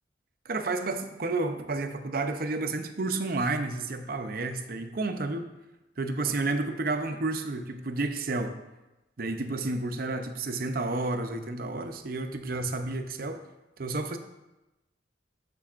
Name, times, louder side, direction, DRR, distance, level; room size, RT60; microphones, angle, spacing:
voice 1, 0.4-5.5 6.0-8.5 9.2-13.4 13.8-14.2, right 3 dB, 50° right, 7 dB, 0.6 m, -31 dB
11.5 x 6.9 x 2.5 m, 1.0 s
head